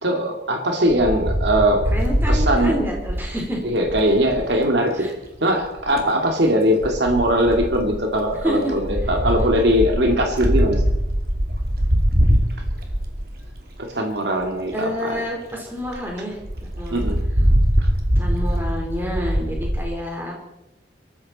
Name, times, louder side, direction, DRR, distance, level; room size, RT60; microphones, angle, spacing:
voice 1, 0.0-1.8 2.3-2.7 3.6-5.1 5.4-10.8 13.9-15.2 16.9-17.2 17.8-17.9, equal, 70° right, 2 dB, 2.5 m, -20 dB
Wind, 0.9-4.5 5.6-6.1 6.8-13.8 14.4-14.5 14.7-14.8 15.1-15.2 15.5-15.6 15.9-16.0 16.4-19.8, equal, 55° right, 2.7 m, -22 dB
voice 2, 1.9-3.6 5.0-5.1 8.4-8.7 14.7-16.4 16.8-17.0 18.2-20.4, equal, 10° right, -1 dB, 3.9 m, -28 dB
23.5 x 14.0 x 4.3 m, 0.89 s
head